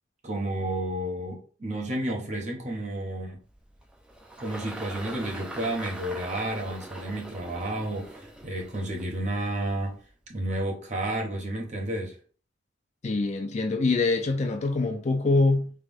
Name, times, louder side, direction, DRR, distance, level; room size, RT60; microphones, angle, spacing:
voice 1, 0.2-3.4 4.4-10.0 10.3-12.2, right 1 dB, 35° right, 1.1 m, -31 dB
Engine, 3.5-10.1, right 1 dB, 5° right, 0.7 m, -42 dB
voice 2, 13.0-15.7, left 3 dB, 35° left, 0.4 m, -24 dB
3.4 x 3.2 x 3.5 m
head